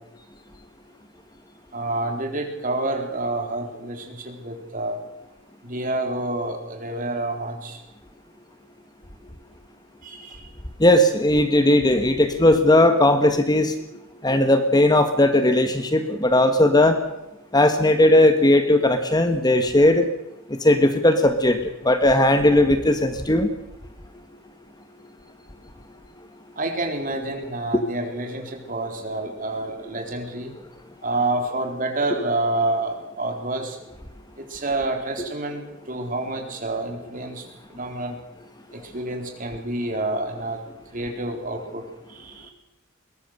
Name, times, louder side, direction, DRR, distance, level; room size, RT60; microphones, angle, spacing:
voice 1, 1.7-5.0 5.6-7.8 10.0-10.5 26.6-30.5 31.0-33.8 34.5-37.4 37.7-38.1 38.7-40.6 40.9-41.8 42.1-42.5, right 2 dB, 40° right, 4 dB, 4.0 m, -28 dB
voice 2, 10.8-13.7 14.2-17.0 17.5-20.1 20.5-23.5, left 1 dB, 20° left, 8 dB, 1.4 m, -17 dB
22.0 x 20.0 x 6.6 m, 0.91 s
head